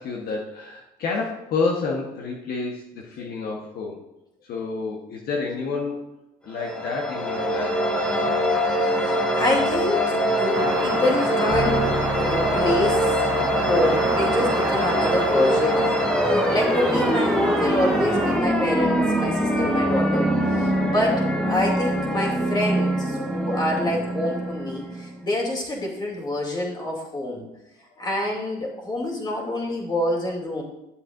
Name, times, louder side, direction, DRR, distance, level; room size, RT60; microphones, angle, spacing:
voice 1, 0.0-4.0 4.4-6.1 6.4-8.3, left 4 dB, 65° left, -1 dB, 1.2 m, -29 dB
sound 1, 6.5-25.2, equal, 5° left, 1.3 m, -23 dB
voice 2, 8.8-13.1 13.6-27.5 28.0-30.6, left 1 dB, 25° left, -1 dB, 2.6 m, -27 dB
sound 2, 10.5-18.4, right 3 dB, 15° right, 0.7 m, -30 dB
Bass guitar, 11.5-21.3, right 5 dB, 45° right, 1.5 m, -38 dB
11.5 x 7.4 x 2.6 m, 0.92 s
cardioid pair, 110°, 17 cm